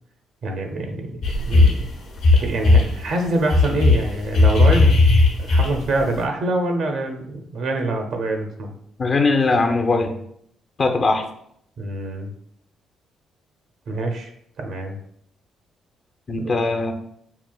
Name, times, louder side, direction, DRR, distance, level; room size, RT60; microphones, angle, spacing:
voice 1, 0.4-1.9 2.3-4.9 5.4-8.7 11.8-12.3 13.9-14.3 14.6-15.0 16.4-16.6, right 2 dB, 70° right, 3 dB, 0.6 m, -25 dB
sound 1, 1.2-1.9 2.2-2.9 3.5-6.0, left 3 dB, 80° left, 0.9 m, -15 dB
voice 2, 9.0-10.1 10.8-11.2 16.3-16.9, left 3 dB, 45° left, 4 dB, 0.5 m, -20 dB
5.6 x 2.4 x 2.2 m, 0.68 s
cardioid pair, 90°, 0 cm